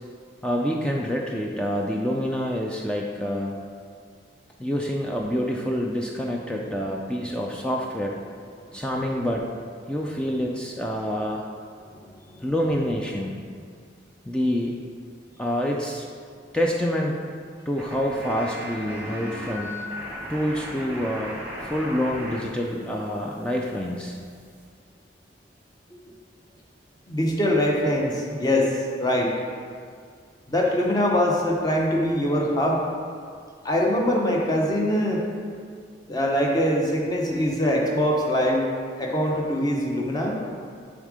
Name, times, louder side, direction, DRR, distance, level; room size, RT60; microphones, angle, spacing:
voice 1, 0.4-3.6 4.6-8.2 8.7-9.5 9.9-11.4 12.4-13.4 14.3-14.8 15.4-16.1 16.5-17.2 17.7-19.9 20.3-24.2, equal, 5° left, -1 dB, 0.3 m, -27 dB
sound 1, 17.8-22.4 22.7-24.6, equal, 10° right, 1.0 m, -37 dB
voice 2, 27.1-29.3 30.5-32.8 33.6-35.2 36.1-38.7 39.0-40.4, equal, 20° left, -1 dB, 0.8 m, -23 dB
7.5 x 3.6 x 4.9 m, 2.1 s
head